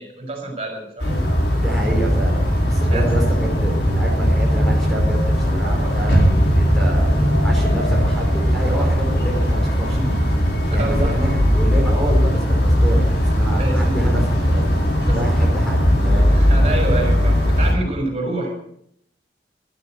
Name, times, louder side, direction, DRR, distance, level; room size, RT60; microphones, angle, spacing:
voice 1, 0.0-1.3 2.9-3.0 10.7-11.2 13.6-14.0 15.1-15.2 16.3-18.5, right 2 dB, 35° right, 2 dB, 5.8 m, -27 dB
sound 1, 1.0-17.7, equal, 70° left, 4.3 m, -18 dB
voice 2, 1.6-10.1 10.7-14.8 15.1-16.4, right 1 dB, ahead, -2 dB, 4.6 m, -28 dB
15.0 x 13.0 x 6.5 m, 0.71 s
head